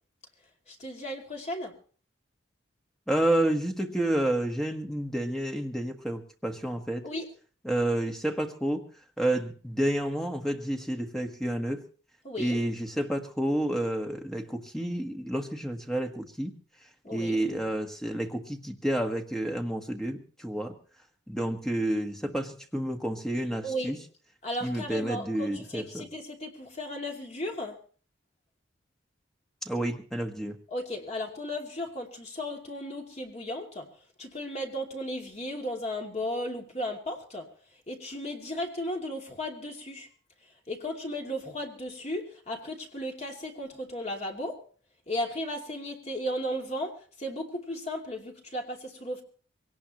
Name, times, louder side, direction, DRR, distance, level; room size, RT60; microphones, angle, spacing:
voice 1, 0.7-1.7 7.0-7.3 12.2-12.6 17.0-17.4 23.6-24.0 24.4-27.8 30.7-33.9 34.2-37.5 37.9-40.1 40.7-44.6 45.1-49.2, equal, 35° left, 1 dB, 2.6 m, -35 dB
voice 2, 3.1-7.1 7.6-8.9 9.2-11.8 12.4-16.5 17.1-20.8 21.3-24.0 24.6-26.1 29.6-30.6, right 1 dB, ahead, 3 dB, 1.4 m, -30 dB
22.5 x 18.0 x 3.0 m, 0.42 s
head